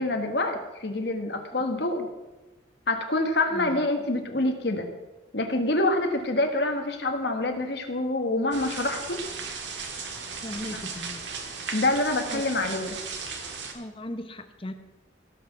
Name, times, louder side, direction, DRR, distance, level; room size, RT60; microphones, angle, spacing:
voice 1, 0.0-2.1 2.9-4.9 5.3-9.2 10.7-10.8 11.7-13.0, left 2 dB, 60° left, 5 dB, 1.5 m, -26 dB
voice 2, 3.5-3.8 10.4-11.2 12.3-12.4 13.7-14.7, left 1 dB, 30° left, 8 dB, 0.8 m, -37 dB
sound 1, 8.5-13.7, right 5 dB, 70° right, 1.5 m, -36 dB
17.0 x 6.0 x 5.9 m, 1.1 s
head